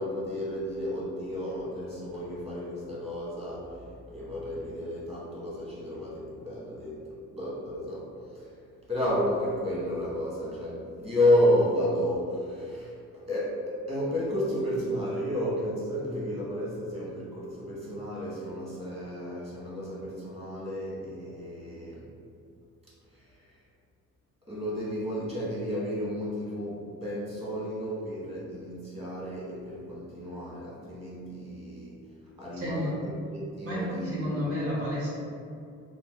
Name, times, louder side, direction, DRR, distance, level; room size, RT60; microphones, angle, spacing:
voice 1, 0.0-8.5 8.9-22.1 23.1-23.3 24.5-32.0 32.4-34.2, equal, 20° right, -7 dB, 1.4 m, -31 dB
voice 2, 32.5-32.9 33.6-35.1, left 1 dB, 50° right, -8 dB, 1.4 m, -31 dB
2.9 x 2.3 x 3.7 m, 2.4 s
cardioid pair, 90°, 30 cm